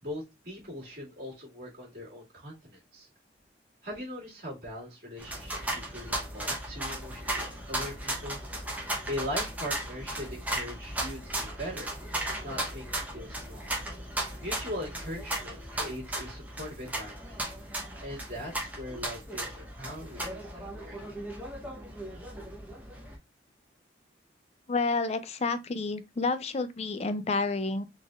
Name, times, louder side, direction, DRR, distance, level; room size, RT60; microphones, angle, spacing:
voice 1, 0.0-3.1 3.8-8.4 9.1-11.9 12.4-13.7 14.4-17.4 18.0-20.3 20.5-21.1, equal, 55° right, 2.0 m, -40 dB
sound 1, 5.2-23.1, right 1 dB, 10° right, 0.9 m, -36 dB
voice 2, 24.7-27.8, left 3 dB, 35° left, 0.4 m, -29 dB
4.2 x 3.4 x 2.4 m
head